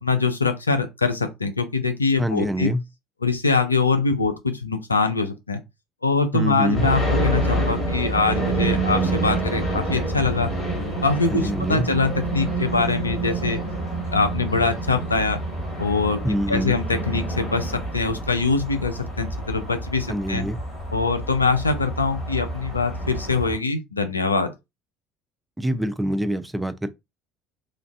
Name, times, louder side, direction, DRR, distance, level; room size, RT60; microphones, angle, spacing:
voice 1, 0.0-2.7 3.2-5.6 6.0-10.5 11.0-13.6 14.1-15.4 15.8-16.2 16.5-20.5 20.9-24.5, left 4 dB, 90° left, 0.4 m, -23 dB
voice 2, 2.2-2.8 6.3-6.9 11.3-11.9 16.2-16.8 20.1-20.6 25.6-26.9, equal, 10° right, 0.5 m, -25 dB
sound 1, 6.7-23.6, right 2 dB, 40° left, 1.8 m, -27 dB
3.1 x 2.3 x 2.4 m
figure-of-eight pair, 60°, 0 cm